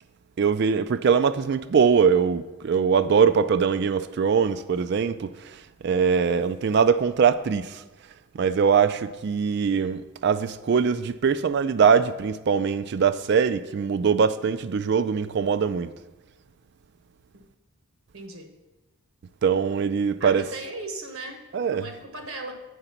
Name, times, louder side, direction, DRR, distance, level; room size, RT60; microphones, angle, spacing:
voice 1, 0.4-7.8 8.3-15.9 19.4-20.4 21.5-21.9, right 6 dB, 50° right, 0.3 m, -22 dB
voice 2, 18.1-18.5 20.2-22.5, right 2 dB, 75° right, 1.1 m, -37 dB
7.9 x 4.9 x 5.7 m
head